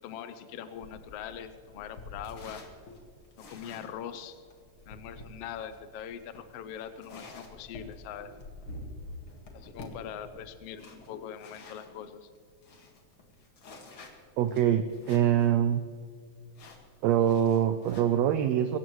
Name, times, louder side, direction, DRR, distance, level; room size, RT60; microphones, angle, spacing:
voice 1, 0.0-2.6 3.4-4.4 4.9-8.3 9.5-12.3, left 9 dB, 75° left, 10 dB, 1.5 m, -42 dB
sound 1, 0.7-11.9 12.3-12.4 12.6-15.5 15.8-15.9 16.5-18.0, left 2 dB, 45° left, 2.4 m, -48 dB
voice 2, 14.4-15.8 17.0-18.8, right 10 dB, 75° right, 9 dB, 1.6 m, -24 dB
21.5 x 17.5 x 3.1 m, 2.1 s
omnidirectional pair, 3.5 m